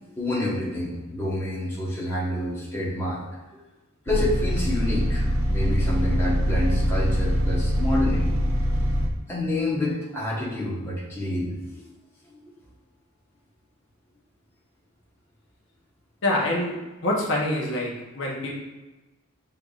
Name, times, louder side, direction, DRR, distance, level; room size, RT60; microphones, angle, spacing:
voice 1, 0.2-3.2 4.1-8.3 9.3-11.8 12.4-12.5, left 1 dB, 10° left, -7 dB, 1.0 m, -28 dB
sound 1, 4.1-9.1, equal, 70° right, 0.6 m, -23 dB
voice 2, 16.2-16.8 17.0-18.5, left 1 dB, 60° left, -3 dB, 0.9 m, -25 dB
6.4 x 3.4 x 2.4 m, 1.1 s
head